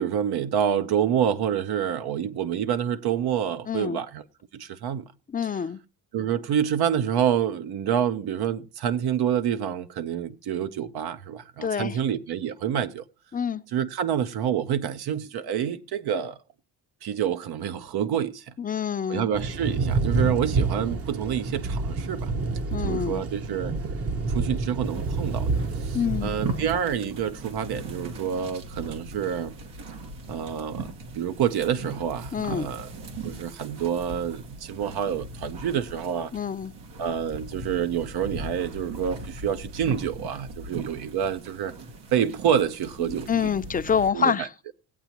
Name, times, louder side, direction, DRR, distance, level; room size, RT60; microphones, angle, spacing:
voice 1, 0.0-4.2 4.5-5.1 6.1-13.0 13.7-16.4 17.0-18.5 19.1-22.3 22.8-23.8 24.3-25.5 25.8-29.6 30.3-32.9 33.2-36.3 37.0-41.7 42.1-43.5 44.1-44.5, right 9 dB, 65° right, 0.8 m, -27 dB
voice 2, 3.7-4.0 5.3-5.8 11.6-12.0 13.3-13.6 18.6-19.3 22.7-23.2 25.9-26.3 32.3-32.7 36.3-36.7 43.1-44.5, left 7 dB, 20° left, 0.5 m, -26 dB
Thunder / Rain, 19.3-26.8, right 3 dB, 35° right, 0.9 m, -28 dB
sound 1, 24.8-44.1, right 2 dB, 85° right, 1.9 m, -39 dB
19.5 x 8.1 x 3.0 m
cardioid pair, 105°, 40 cm